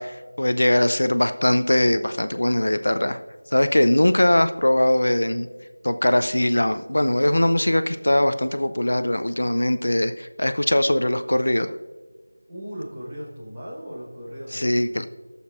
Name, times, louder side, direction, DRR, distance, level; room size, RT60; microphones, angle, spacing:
voice 1, 0.0-3.2 3.5-5.5 5.8-11.7 14.5-14.9, left 1 dB, 70° left, 10 dB, 0.5 m, -21 dB
voice 2, 12.5-15.0, equal, 10° right, -8 dB, 1.4 m, -37 dB
20.5 x 6.9 x 2.5 m, 1.4 s
figure-of-eight pair, 180°, 0 cm